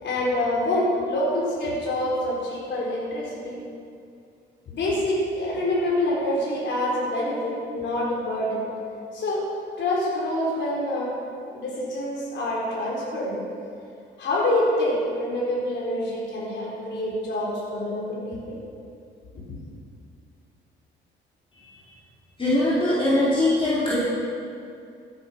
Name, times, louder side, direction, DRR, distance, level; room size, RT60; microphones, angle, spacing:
voice 1, 0.0-3.6 4.7-8.6 9.1-9.4 9.8-11.1 11.5-13.4 14.2-18.6, left 1 dB, 65° left, -5 dB, 4.4 m, -26 dB
voice 2, 22.4-24.0, left 1 dB, 25° left, -9 dB, 3.8 m, -21 dB
15.0 x 10.5 x 6.0 m, 2.4 s
cardioid pair, 90°, 20 cm